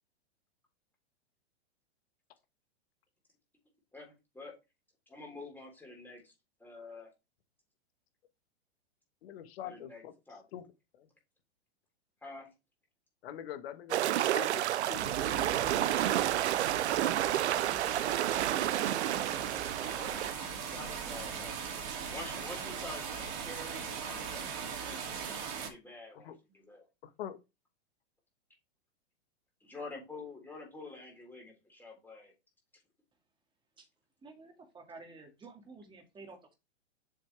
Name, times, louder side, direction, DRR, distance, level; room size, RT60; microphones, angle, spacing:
voice 1, 3.9-4.5 5.1-6.3 6.6-7.1 9.6-10.4 12.2-12.5 18.9-20.2 20.7-21.5 22.1-25.1 25.4-26.9 29.6-32.3, left 3 dB, 5° left, 3.5 m, -48 dB
voice 2, 9.2-10.1 10.5-10.6 10.9-11.1 13.2-15.2 24.9-25.0 26.1-26.4 27.0-27.4, left 10 dB, 60° left, 1.5 m, -44 dB
sound 1, 13.9-20.3, right 13 dB, 80° right, 0.6 m, -30 dB
sound 2, 14.9-25.7, right 6 dB, 50° right, 2.5 m, -39 dB
voice 3, 34.2-36.5, right 3 dB, 15° right, 2.0 m, -51 dB
7.3 x 5.8 x 3.3 m
hypercardioid pair, 130°, 34 cm